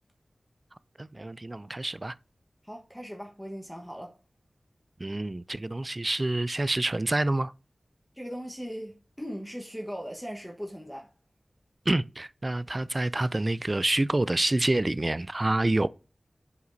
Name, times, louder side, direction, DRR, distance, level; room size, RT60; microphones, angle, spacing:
voice 1, 1.0-2.1 5.0-7.5 11.9-15.9, right 2 dB, 40° right, 0.3 m, -27 dB
voice 2, 2.6-4.2 8.1-11.1, equal, 5° left, 1.2 m, -39 dB
8.0 x 5.0 x 2.6 m
cardioid pair, 40°, 0 cm